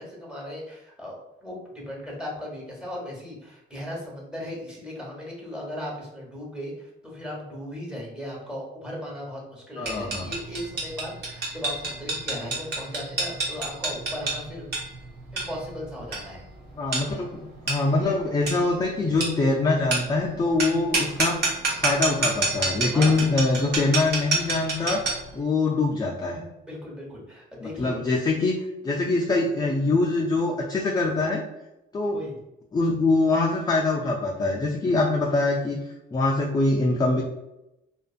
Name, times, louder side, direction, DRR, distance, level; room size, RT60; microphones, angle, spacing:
voice 1, 0.0-14.7 15.3-16.5 22.9-23.3 26.6-28.0 32.1-32.3, left 1 dB, 5° right, -3 dB, 1.0 m, -37 dB
voice 2, 9.8-10.3 16.8-21.4 21.8-25.0 25.3-26.4 27.6-28.6 28.8-31.4 31.9-32.2 32.7-35.8 36.1-37.2, left 3 dB, 20° left, -2 dB, 0.4 m, -24 dB
sound 1, 9.9-25.3, right 3 dB, 55° right, 0.9 m, -29 dB
2.5 x 2.4 x 2.4 m, 0.89 s
cardioid pair, 90°, 20 cm